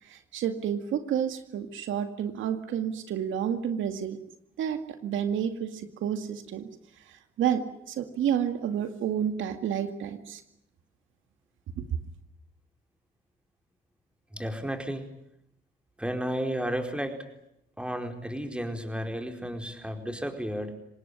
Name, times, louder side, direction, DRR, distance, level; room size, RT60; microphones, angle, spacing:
voice 1, 0.0-4.2 4.6-6.7 7.1-10.4 11.8-11.9, right 9 dB, 75° right, 8 dB, 2.1 m, -30 dB
voice 2, 14.3-15.0 16.0-17.2 17.8-20.7, equal, 5° right, 5 dB, 4.5 m, -32 dB
25.5 x 19.5 x 9.8 m, 0.80 s
cardioid pair, 90°, 20 cm